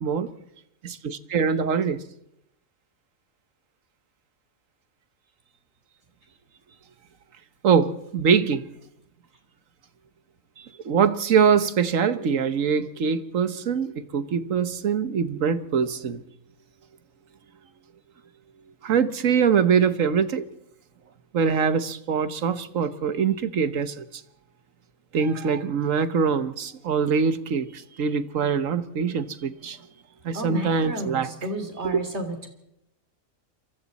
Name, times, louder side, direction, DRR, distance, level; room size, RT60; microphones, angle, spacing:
voice 1, 0.8-2.0 7.6-8.7 10.6-16.2 18.8-20.4 21.3-24.2 25.1-29.8 30.2-31.3 31.8-32.0, right 6 dB, 70° right, 1.5 m, -23 dB
voice 2, 30.3-32.5, right 1 dB, 50° right, 3.4 m, -32 dB
28.0 x 23.5 x 4.2 m
omnidirectional pair, 1.4 m